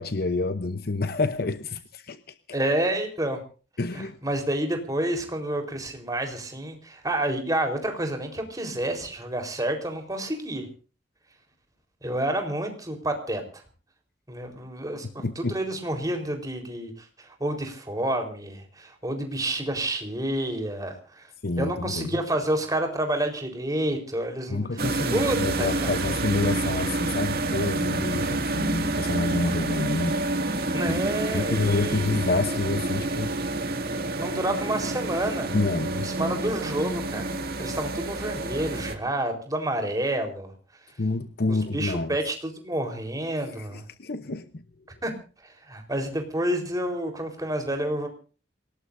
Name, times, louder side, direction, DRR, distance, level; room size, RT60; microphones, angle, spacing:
voice 1, 0.0-2.6 3.8-4.2 15.0-15.5 21.4-22.1 24.5-30.2 30.9-31.0 31.3-33.3 35.5-36.1 41.0-42.2 43.6-44.7, left 3 dB, 55° left, 0.9 m, -28 dB
voice 2, 2.5-3.4 3.9-10.7 12.0-13.6 14.3-21.3 21.6-24.8 25.1-25.9 30.7-32.0 34.2-35.5 36.0-37.3 37.6-40.5 41.5-43.8 45.0-45.1 45.4-48.1, right 1 dB, 20° right, 4.2 m, -29 dB
sound 1, 24.8-39.0, right 2 dB, 55° right, 2.3 m, -28 dB
28.0 x 18.5 x 2.7 m
head